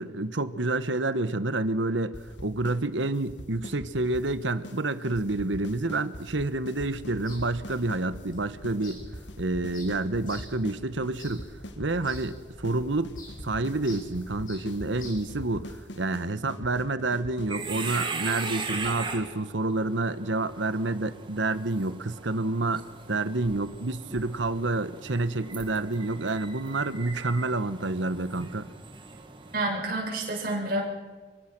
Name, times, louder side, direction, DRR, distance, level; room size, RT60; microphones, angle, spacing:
voice 1, 0.0-9.0 9.4-11.5 11.8-28.7, right 2 dB, 80° right, 13 dB, 1.3 m, -29 dB
sound 1, 2.1-2.8 3.0-4.3 4.6-4.8 5.0-8.3 8.6-8.8 9.0-10.8 11.0-12.3 12.6-12.8 13.0-18.1, equal, 75° left, 2.0 m, -43 dB
sound 2, 6.7-15.7, left 1 dB, 45° left, 7.1 m, -47 dB
sound 3, 17.4-29.6, right 4 dB, 25° right, 2.3 m, -39 dB
voice 2, 29.5-30.8, right 2 dB, 50° right, -1 dB, 7.1 m, -29 dB
24.5 x 23.5 x 6.2 m, 1.4 s
head